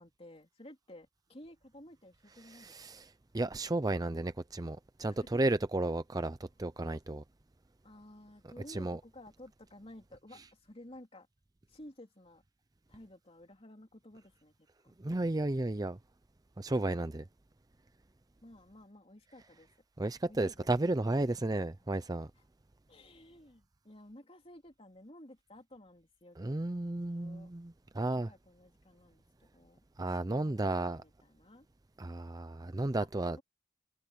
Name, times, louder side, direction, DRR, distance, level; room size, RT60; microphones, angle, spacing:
voice 1, 0.0-2.7 5.1-5.5 7.8-11.3 11.7-12.4 12.9-15.0 18.4-19.7 20.3-20.7 22.9-27.5 28.1-29.8 30.2-31.7 33.0-33.1, left 1 dB, 30° left, 3.1 m, -54 dB
voice 2, 2.5-7.2 8.7-9.0 15.0-16.0 16.6-17.2 20.0-22.3 26.4-28.3 30.0-31.0 32.0-33.4, right 2 dB, 20° right, 0.5 m, -33 dB
head